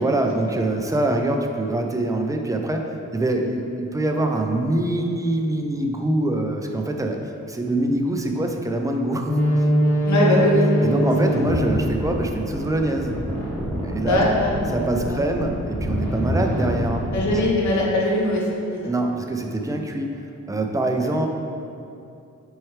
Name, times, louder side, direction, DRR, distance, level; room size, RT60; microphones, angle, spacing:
voice 1, 0.0-2.8 3.1-7.2 7.5-9.3 10.8-13.2 13.8-14.2 14.7-17.4 18.9-20.2 20.5-21.3, right 1 dB, 10° right, 3 dB, 0.4 m, -24 dB
sound 1, 9.3-17.4, equal, 5° left, 1.4 m, -23 dB
voice 2, 10.1-10.7 14.0-14.7 15.1-15.2 17.1-18.9 21.0-21.1, left 1 dB, 65° left, -3 dB, 1.1 m, -21 dB
7.6 x 4.5 x 3.2 m, 2.6 s
wide cardioid pair, 135°, 31 cm